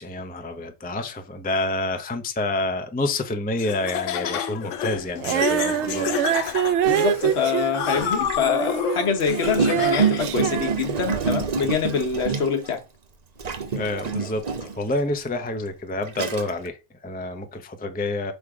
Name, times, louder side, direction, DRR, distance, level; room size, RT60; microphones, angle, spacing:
voice 1, 0.0-6.2 13.7-14.4 14.7-18.3, left 2 dB, 10° left, 0.5 m, -28 dB
Laughter, 3.6-10.4, left 9 dB, 90° left, 1.0 m, -29 dB
Gurgling, 4.9-5.0 5.8-8.5 9.2-12.8 13.4-14.9 15.6-15.7 16.1-16.7, right 5 dB, 40° right, 0.8 m, -28 dB
Female singing, 5.2-11.6 12.2-12.3, right 11 dB, 75° right, 0.8 m, -25 dB
voice 2, 6.8-12.8, left 6 dB, 60° left, 1.2 m, -25 dB
6.4 x 3.6 x 4.8 m
omnidirectional pair, 1.3 m